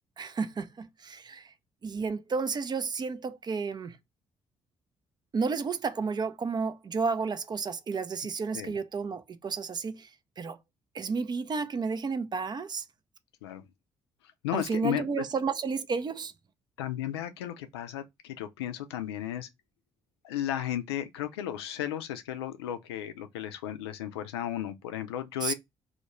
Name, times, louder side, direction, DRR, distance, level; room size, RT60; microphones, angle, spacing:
voice 1, 0.2-1.5 1.8-4.0 5.3-10.1 10.4-10.6 10.9-12.8 14.5-16.3 25.4-25.5, right 5 dB, 30° right, 0.4 m, -32 dB
voice 2, 14.4-15.2 16.8-19.5 20.2-25.5, left 11 dB, 80° left, 0.4 m, -34 dB
2.3 x 2.1 x 2.9 m
figure-of-eight pair, 45°, 13 cm